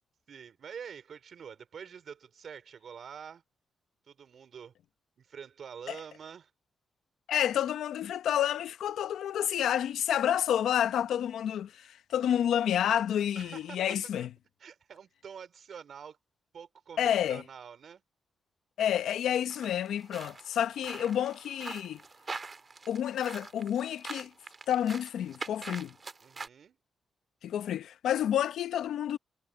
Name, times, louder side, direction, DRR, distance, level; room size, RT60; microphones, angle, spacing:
voice 1, 0.3-3.4 4.1-4.7 5.2-6.5 13.4-13.8 14.2-14.3 14.6-16.2 16.5-18.0 26.2-26.8, right 7 dB, 65° right, 3.8 m, -46 dB
voice 2, 7.3-14.3 17.0-17.4 18.8-22.0 22.9-24.3 24.7-25.9 27.4-29.2, left 10 dB, 85° left, 0.8 m, -29 dB
sound 1, 19.5-26.5, right 4 dB, 35° right, 2.0 m, -44 dB
cardioid pair, 80°, 0 cm